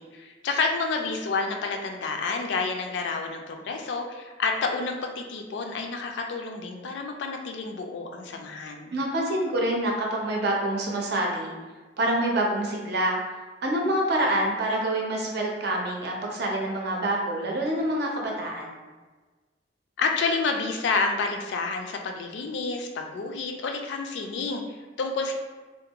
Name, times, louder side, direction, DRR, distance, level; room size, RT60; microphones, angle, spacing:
voice 1, 0.0-8.9 20.0-25.3, left 4 dB, 65° left, 3 dB, 0.3 m, -29 dB
voice 2, 8.9-11.5 12.0-13.2 13.6-18.7, right 1 dB, 60° right, -1 dB, 0.5 m, -26 dB
2.5 x 2.2 x 2.8 m, 1.3 s
head